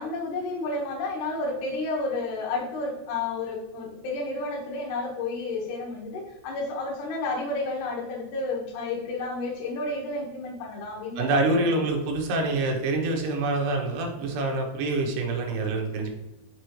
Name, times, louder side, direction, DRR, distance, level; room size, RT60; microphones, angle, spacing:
voice 1, 0.0-11.3 11.6-11.8, left 3 dB, 65° left, -2 dB, 2.5 m, -31 dB
voice 2, 11.2-16.1, right 2 dB, 85° right, 2 dB, 3.1 m, -26 dB
6.6 x 5.3 x 3.0 m, 1.0 s
omnidirectional pair, 4.6 m